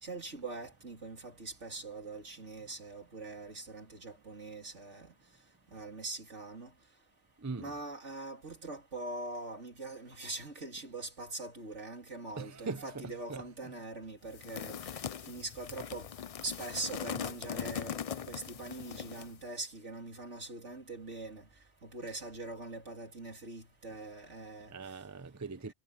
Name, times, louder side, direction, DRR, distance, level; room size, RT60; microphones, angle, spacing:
voice 1, 0.0-5.1 5.7-6.7 7.6-14.9 15.3-16.1 16.4-21.5 21.8-24.7, right 2 dB, 65° right, 4.0 m, -43 dB
voice 2, 7.4-7.7 12.4-13.4 24.7-25.7, right 4 dB, 20° right, 0.6 m, -41 dB
sound 1, 14.3-19.4, left 8 dB, 65° left, 0.3 m, -40 dB
omnidirectional pair, 1.3 m